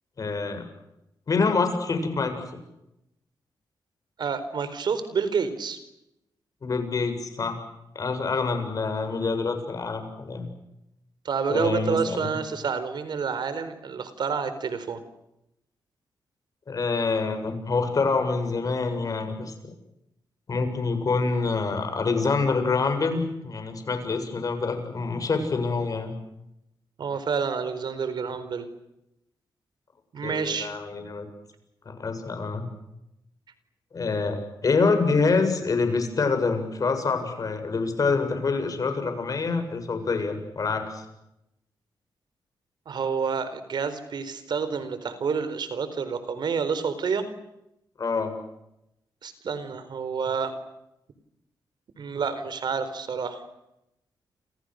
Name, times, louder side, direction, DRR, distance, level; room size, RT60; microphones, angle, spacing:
voice 1, 0.2-0.7 1.3-2.4 6.6-7.6 7.9-10.5 11.5-12.3 16.7-19.5 20.5-26.1 30.2-31.3 31.9-32.7 33.9-41.0 48.0-48.3, left 4 dB, 45° left, 7 dB, 7.6 m, -26 dB
voice 2, 4.2-5.8 11.2-15.0 27.0-28.7 30.1-30.7 42.9-47.2 49.2-50.5 52.0-53.4, right 6 dB, 65° right, 12 dB, 4.3 m, -29 dB
29.5 x 27.5 x 6.6 m, 0.86 s
cardioid pair, 85°, 8 cm